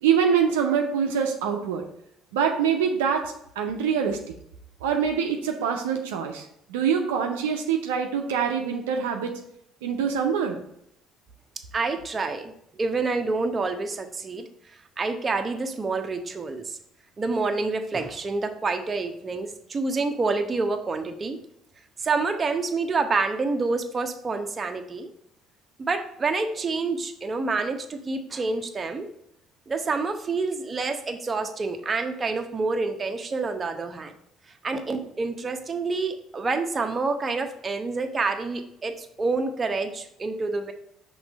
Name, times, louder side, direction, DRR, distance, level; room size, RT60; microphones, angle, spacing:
voice 1, 0.0-1.8 2.3-4.2 4.8-9.4 9.8-10.6, right 7 dB, 75° right, 3 dB, 0.6 m, -25 dB
voice 2, 11.7-14.5 15.0-16.8 17.2-21.4 22.0-25.1 25.8-29.1 29.7-34.1 34.6-40.7, right 3 dB, 30° right, 6 dB, 0.8 m, -28 dB
5.9 x 3.1 x 5.2 m, 0.75 s
hypercardioid pair, 55°, 0 cm